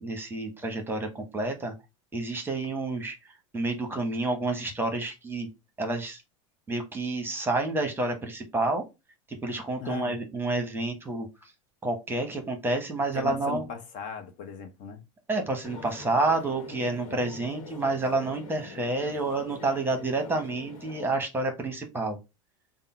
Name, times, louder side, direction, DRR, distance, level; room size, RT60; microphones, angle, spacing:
voice 1, 0.0-1.7 2.1-3.2 3.5-5.5 5.8-6.2 6.7-8.8 9.4-11.3 11.8-13.6 15.3-22.2, right 2 dB, 10° right, 1.0 m, -29 dB
voice 2, 9.8-10.2 13.1-15.1, left 6 dB, 50° left, 0.7 m, -38 dB
sound 1, 15.6-21.1, left 4 dB, 85° left, 1.0 m, -44 dB
3.7 x 2.0 x 4.3 m
supercardioid pair, 115°, 17 cm